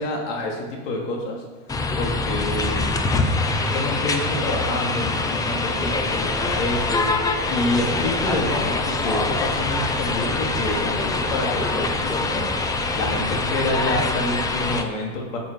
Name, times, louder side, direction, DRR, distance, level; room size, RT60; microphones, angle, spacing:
voice 1, 0.0-1.4 2.0-2.9 3.6-7.1 7.5-12.5 12.9-15.4, left 1 dB, 80° left, -1 dB, 3.0 m, -27 dB
sound 1, 1.7-14.8, left 3 dB, 10° left, 0.5 m, -24 dB
sound 2, 3.0-13.7, right 1 dB, 10° right, 1.3 m, -34 dB
11.5 x 7.1 x 4.9 m, 1.3 s
supercardioid pair, 145°, 37 cm